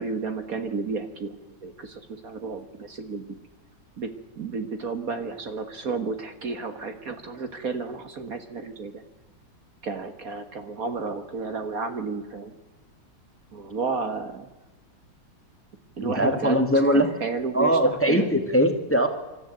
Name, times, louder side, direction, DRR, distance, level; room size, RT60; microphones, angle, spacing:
voice 1, 0.0-1.3 1.6-3.2 4.0-9.0 9.8-12.5 13.5-14.5 16.0-18.4, right 4 dB, 50° right, 8 dB, 1.8 m, -32 dB
voice 2, 16.0-17.1 17.5-19.1, equal, 5° left, 7 dB, 1.8 m, -21 dB
26.0 x 13.0 x 9.1 m, 1.1 s
omnidirectional pair, 2.0 m